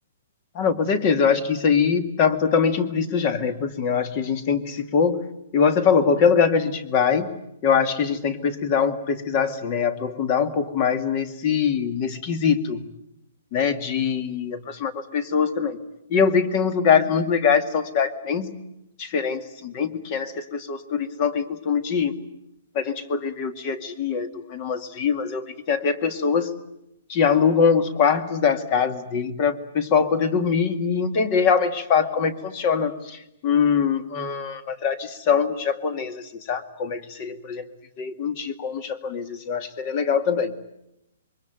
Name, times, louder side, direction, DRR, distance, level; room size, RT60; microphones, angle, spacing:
voice 1, 0.5-5.2 5.5-7.3 7.6-12.8 13.5-15.8 16.1-18.5 19.0-22.2 22.7-26.5 27.1-37.6 38.0-40.5, left 6 dB, 30° left, 11 dB, 2.1 m, -23 dB
27.0 x 23.5 x 9.3 m, 0.82 s
hypercardioid pair, 170°, 0 cm